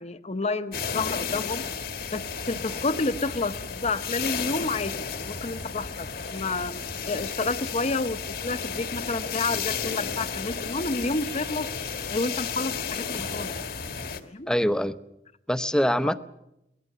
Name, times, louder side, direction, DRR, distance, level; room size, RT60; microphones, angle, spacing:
voice 1, 0.0-1.6 2.1-6.7 7.1-11.7 12.1-13.6 14.2-14.5 16.0-16.1, left 3 dB, 40° left, 12 dB, 0.9 m, -30 dB
sound 1, 0.7-14.2, left 6 dB, 60° left, 1.6 m, -33 dB
voice 2, 14.5-15.0 15.5-16.2, equal, 5° left, 12 dB, 0.7 m, -23 dB
22.5 x 19.0 x 6.8 m, 0.85 s
head